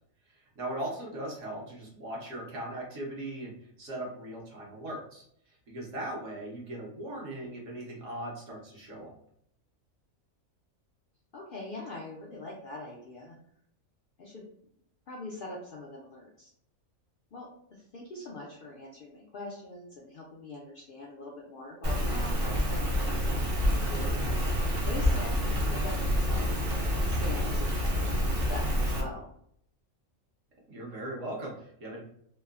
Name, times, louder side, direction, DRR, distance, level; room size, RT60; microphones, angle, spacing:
voice 1, 0.3-9.1 30.7-32.0, right 1 dB, 65° right, -3 dB, 1.2 m, -39 dB
voice 2, 11.3-13.3 14.2-14.4 15.1-16.5 17.3-24.5 24.8-26.7 27.1-27.8 28.5-29.3, left 2 dB, 65° left, -3 dB, 0.5 m, -43 dB
Rain, 21.8-29.0, equal, 50° right, 0.8 m, -28 dB
3.0 x 2.0 x 2.3 m, 0.68 s
omnidirectional pair, 1.4 m